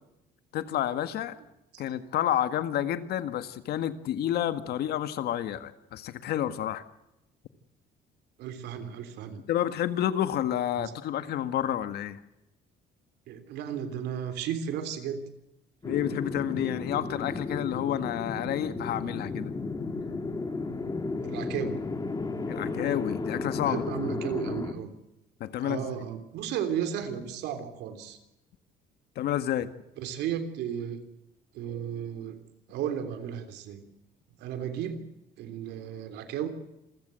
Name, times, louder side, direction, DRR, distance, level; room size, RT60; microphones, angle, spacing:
voice 1, 0.5-1.4 1.8-6.8 9.5-12.2 15.8-19.5 22.5-23.8 25.4-25.8 29.2-29.7, left 11 dB, 70° left, 11 dB, 1.8 m, -29 dB
voice 2, 8.4-9.4 10.7-10.9 13.3-15.3 21.2-21.8 23.6-24.9 25.6-28.2 30.0-31.0 31.5-32.4 32.7-33.8 34.4-35.0 35.4-36.5, right 8 dB, 80° right, 8 dB, 3.2 m, -34 dB
sound 1, 15.8-24.7, left 3 dB, 20° left, 2.3 m, -34 dB
27.5 x 15.0 x 7.7 m, 0.92 s
cardioid pair, 110°, 17 cm